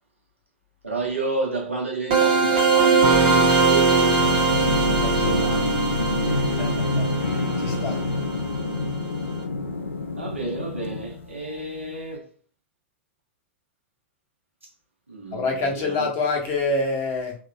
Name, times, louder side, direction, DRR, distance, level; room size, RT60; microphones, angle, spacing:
voice 1, 0.8-4.3 4.8-5.8 10.2-12.3 15.1-16.1, right 3 dB, 90° right, 1.3 m, -31 dB
sound 1, 2.1-8.8, right 4 dB, 50° right, 1.4 m, -21 dB
sound 2, 3.1-9.3, left 9 dB, 25° left, 0.6 m, -37 dB
sound 3, 4.2-11.7, left 2 dB, 85° left, 0.4 m, -27 dB
voice 2, 7.6-8.0 15.3-17.3, left 3 dB, 40° left, 1.4 m, -25 dB
3.6 x 3.4 x 2.3 m
figure-of-eight pair, 90°, 7 cm